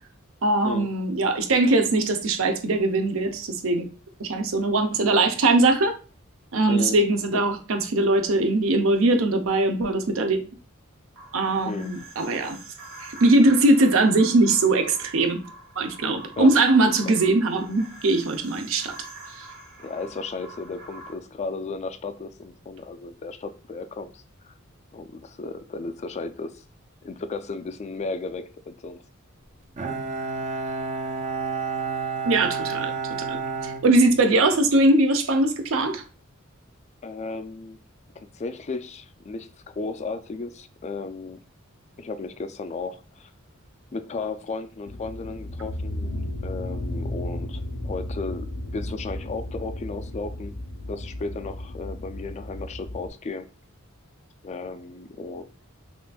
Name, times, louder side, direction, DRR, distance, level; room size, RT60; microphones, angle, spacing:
voice 1, 0.4-3.9 4.2-5.9 6.5-10.5 11.3-12.6 13.0-15.4 15.8-19.0 19.3-19.5 32.2-32.9 33.2-33.4 33.6-36.0, right 2 dB, 70° right, 0.6 m, -21 dB
sound 1, 11.1-21.1, right 2 dB, 90° right, 1.5 m, -45 dB
voice 2, 19.8-24.5 24.9-26.6 27.0-29.0 37.0-37.8 38.2-41.4 42.0-43.3 43.9-46.1 46.4-48.5 48.7-50.6 50.9-53.5 54.4-55.4, left 3 dB, 35° left, 0.3 m, -34 dB
Bowed string instrument, 29.8-34.6, right 4 dB, 35° right, 0.5 m, -30 dB
sound 2, 44.9-53.1, left 1 dB, 85° left, 0.6 m, -34 dB
5.7 x 2.5 x 2.3 m
head